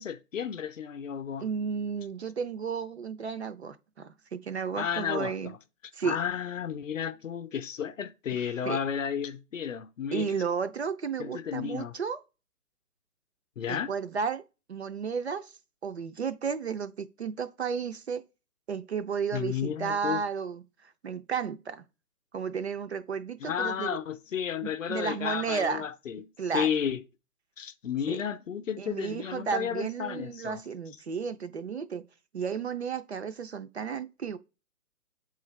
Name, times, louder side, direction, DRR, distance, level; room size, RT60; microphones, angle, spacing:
voice 1, 0.0-1.5 4.8-5.6 6.0-10.3 11.2-12.0 13.6-13.9 19.3-20.2 23.4-27.0 27.6-30.6, left 8 dB, 55° left, 0.6 m, -33 dB
voice 2, 1.4-5.5 5.9-6.2 8.6-8.8 10.1-12.2 13.7-14.4 14.7-15.5 15.8-18.3 18.7-21.8 22.3-23.9 24.6-25.9 26.4-26.7 28.1-28.2 28.8-32.1 32.3-34.4, right 6 dB, 45° right, 0.5 m, -33 dB
7.8 x 3.9 x 3.1 m
hypercardioid pair, 150°, 47 cm